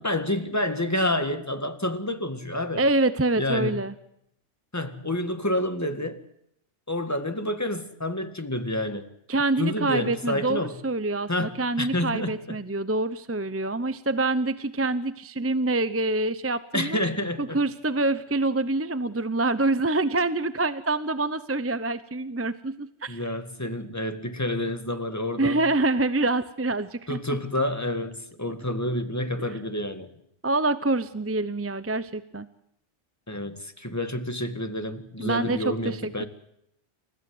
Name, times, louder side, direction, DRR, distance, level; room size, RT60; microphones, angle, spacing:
voice 1, 0.0-2.8 3.4-3.8 4.7-6.2 6.9-9.1 9.6-10.8 11.3-12.6 16.7-17.6 23.1-25.6 27.1-30.1 33.3-36.3, left 1 dB, 15° left, 8 dB, 1.9 m, -29 dB
voice 2, 2.8-3.9 9.3-17.0 17.4-23.2 25.4-27.2 30.4-32.5 35.2-36.2, right 2 dB, 15° right, 14 dB, 0.7 m, -26 dB
29.5 x 15.0 x 7.9 m, 0.77 s
omnidirectional pair, 1.2 m